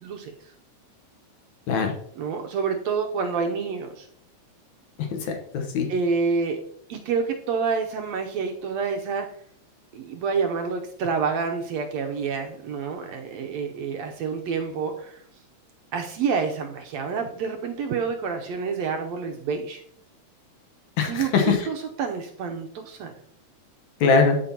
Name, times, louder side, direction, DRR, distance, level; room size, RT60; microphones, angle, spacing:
voice 1, 0.0-0.3 2.2-4.1 5.9-6.6 6.9-9.3 9.9-15.2 15.9-19.8 21.1-21.3 21.7-23.1, right 5 dB, 75° right, 4 dB, 1.8 m, -28 dB
voice 2, 5.0-5.9 21.0-21.7 24.0-24.4, left 5 dB, 75° left, 3 dB, 2.4 m, -22 dB
14.0 x 6.0 x 2.8 m, 0.65 s
omnidirectional pair, 3.3 m